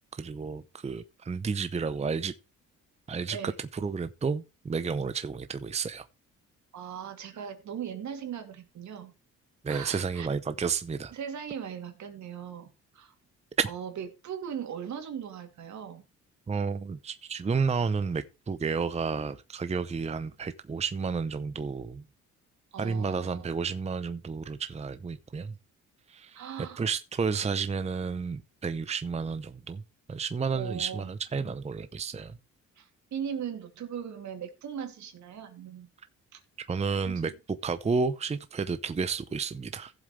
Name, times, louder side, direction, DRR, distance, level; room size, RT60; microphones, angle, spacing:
voice 1, 0.1-2.3 3.1-6.1 9.6-11.1 13.6-13.7 16.5-22.0 22.8-25.5 26.1-26.4 26.8-29.8 30.1-32.4 36.7-37.3 37.6-39.9, right 5 dB, 20° right, 0.7 m, -31 dB
voice 2, 6.7-9.1 9.7-10.3 11.1-13.1 13.7-16.1 22.7-23.5 26.3-26.9 30.5-31.1 32.8-35.9 36.3-36.4 36.7-37.3, right 8 dB, 70° right, 2.7 m, -39 dB
15.5 x 7.6 x 3.3 m
cardioid pair, 90°, 30 cm